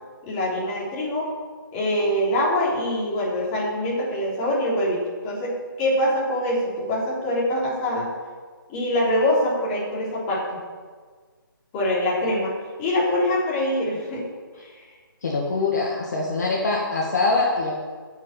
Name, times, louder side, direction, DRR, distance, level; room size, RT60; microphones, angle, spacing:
voice 1, 0.2-1.3 1.7-8.1 8.7-10.6 11.7-12.5 12.8-14.3 14.6-14.8, left 1 dB, 20° left, -5 dB, 3.5 m, -24 dB
voice 2, 15.2-17.7, left 3 dB, 50° left, -3 dB, 2.2 m, -23 dB
11.0 x 6.5 x 8.8 m, 1.5 s
figure-of-eight pair, 150°, 12 cm